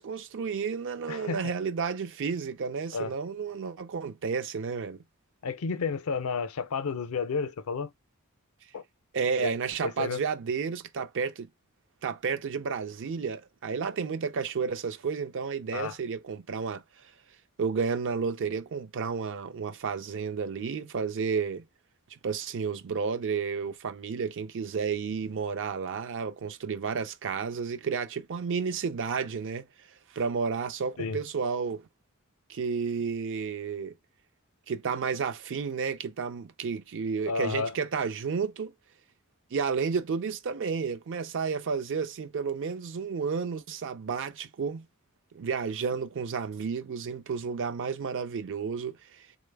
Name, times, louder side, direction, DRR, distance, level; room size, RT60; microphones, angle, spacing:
voice 1, 0.0-5.0 9.1-11.5 12.0-16.8 17.6-21.6 22.2-29.7 30.1-31.8 32.5-33.9 34.7-38.7 39.5-44.8 45.3-49.4, right 5 dB, 60° right, 0.5 m, -31 dB
voice 2, 1.1-1.4 2.9-3.1 5.4-7.9 8.7-8.8 9.4-9.5 9.8-10.2 15.7-15.9 31.0-31.2 37.3-37.7, left 5 dB, 70° left, 0.5 m, -31 dB
3.9 x 2.1 x 3.3 m
head